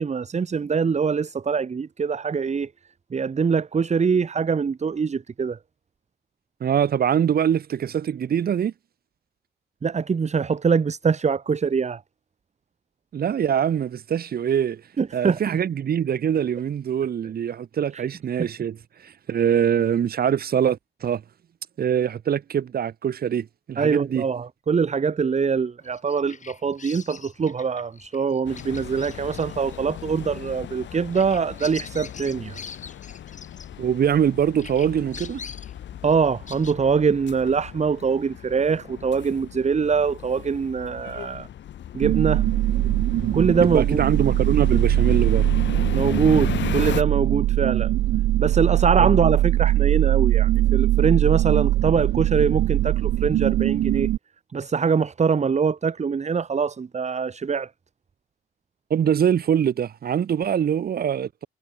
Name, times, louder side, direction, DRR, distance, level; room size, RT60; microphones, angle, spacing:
voice 1, 0.0-2.7 3.1-5.6 9.8-12.0 15.0-15.4 18.4-18.5 23.8-32.6 36.0-41.5 41.9-42.4 43.3-44.0 45.9-47.9 48.4-54.1 54.5-57.7, right 5 dB, 35° right, 1.9 m, -23 dB
voice 2, 6.6-8.7 13.1-14.8 15.1-21.2 21.8-24.2 33.8-35.4 43.6-45.5 49.0-49.2 58.9-61.5, right 8 dB, 50° right, 1.2 m, -23 dB
Bird vocalization bird call bird song, 25.8-34.3 34.6-36.7, left 5 dB, 40° left, 3.4 m, -43 dB
sound 1, 28.5-47.0, left 10 dB, 65° left, 2.5 m, -36 dB
sound 2, 42.0-54.2, right 14 dB, 70° right, 0.6 m, -21 dB
cardioid pair, 90°, 20 cm